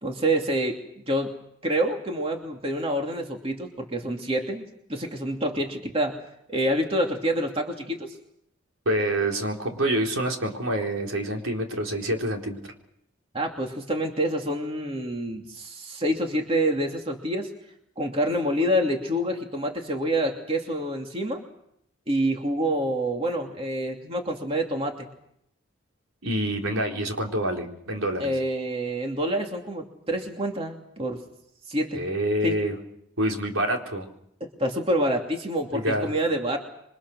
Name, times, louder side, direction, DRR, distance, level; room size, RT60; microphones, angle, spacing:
voice 1, 0.0-0.8 1.1-1.3 1.6-6.2 6.5-8.1 13.3-17.5 18.0-21.4 22.1-25.1 28.2-31.2 31.7-32.0 32.4-32.6 34.4-36.6, right 1 dB, 25° right, 2 dB, 2.8 m, -27 dB
voice 2, 8.9-12.6 26.2-28.3 31.9-32.8 33.2-34.1 35.7-36.1, right 1 dB, 80° right, 1 dB, 4.3 m, -27 dB
28.0 x 24.0 x 6.4 m, 0.76 s
head